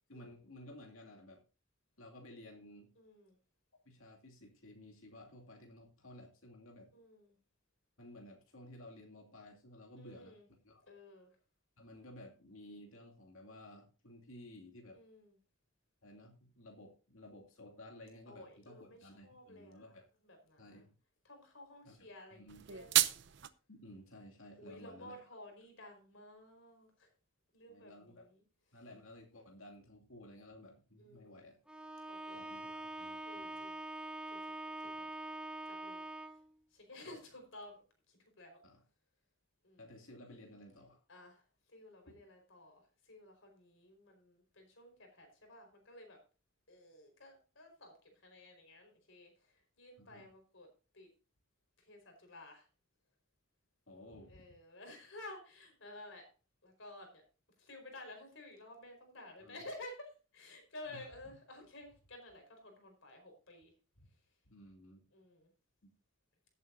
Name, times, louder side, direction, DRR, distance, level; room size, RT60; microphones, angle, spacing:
voice 1, 0.1-1.4 2.0-2.9 3.8-6.9 8.0-10.4 10.6-10.8 11.8-15.0 16.0-20.0 20.6-20.9 21.8-22.0 22.3-22.6 23.7-25.2 27.7-28.3 28.7-31.6 32.3-33.7 35.0-35.1 37.0-37.2 38.6-38.8 39.8-41.0 42.1-42.2 50.0-50.3 53.9-54.4 59.4-59.6 60.9-61.1 61.6-61.7 64.0-64.1 64.4-65.0 65.8-65.9, left 1 dB, 85° left, 1 dB, 2.5 m, -55 dB
voice 2, 3.0-3.4 6.9-7.4 10.0-10.5 10.9-11.3 14.9-15.4 18.3-19.9 20.2-20.8 21.2-23.1 24.6-27.1 27.5-28.4 31.0-31.4 32.1-32.4 33.2-33.8 34.3-34.9 35.7-36.4 36.7-38.6 39.6-39.8 41.1-41.4 41.7-46.2 46.7-50.7 50.9-51.1 51.8-52.7 54.3-56.3 56.6-57.2 57.6-63.7 65.1-65.5, left 1 dB, 65° left, 4 dB, 4.6 m, -53 dB
sound 1, 22.5-23.5, right 13 dB, 60° right, 0.7 m, -31 dB
Bowed string instrument, 31.7-36.5, right 1 dB, 5° right, 0.8 m, -44 dB
17.0 x 8.4 x 2.6 m, 0.34 s
head